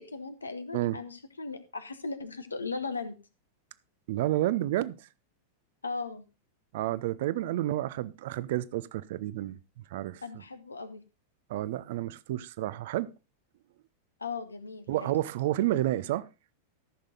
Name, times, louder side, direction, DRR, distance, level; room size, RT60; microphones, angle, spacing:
voice 1, 0.0-3.2 5.8-6.3 10.2-11.0 14.2-15.1, left 4 dB, 75° left, 1.1 m, -37 dB
voice 2, 4.1-5.0 6.7-9.6 9.9-10.2 11.5-13.1 14.9-16.3, right 14 dB, 55° right, 0.5 m, -30 dB
14.0 x 6.5 x 4.0 m
figure-of-eight pair, 90°, 0 cm